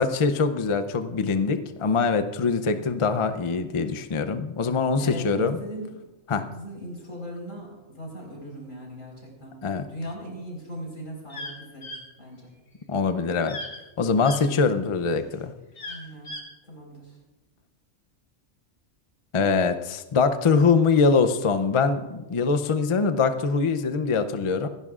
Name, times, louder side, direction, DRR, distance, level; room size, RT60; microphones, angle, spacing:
voice 1, 0.0-5.6 6.3-6.5 9.6-9.9 12.9-13.6 14.0-15.5 19.3-24.7, left 4 dB, 40° left, 8 dB, 0.4 m, -23 dB
voice 2, 5.0-5.9 6.4-11.9 12.2-12.5 15.8-16.3 16.7-17.2, equal, 90° left, -2 dB, 4.7 m, -39 dB
sound 1, 11.3-11.5 11.8-12.0 13.5-13.8 14.2-14.4 15.8-16.4, left 1 dB, 60° left, 1.9 m, -36 dB
26.0 x 11.0 x 2.4 m, 1.1 s
omnidirectional pair, 1.3 m